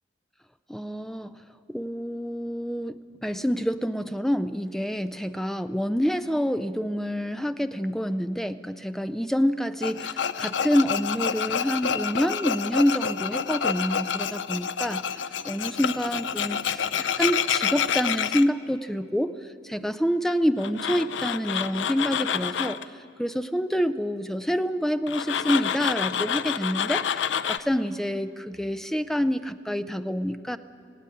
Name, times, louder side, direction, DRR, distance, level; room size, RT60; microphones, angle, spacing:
voice 1, 0.7-1.4 1.7-16.9 17.2-19.3 19.6-22.8 23.2-30.6, equal, ahead, 11 dB, 0.4 m, -27 dB
Tools, 9.8-18.4 20.6-22.8 25.1-27.6, left 8 dB, 75° left, 0.5 m, -28 dB
19.0 x 16.0 x 8.6 m, 2.5 s
head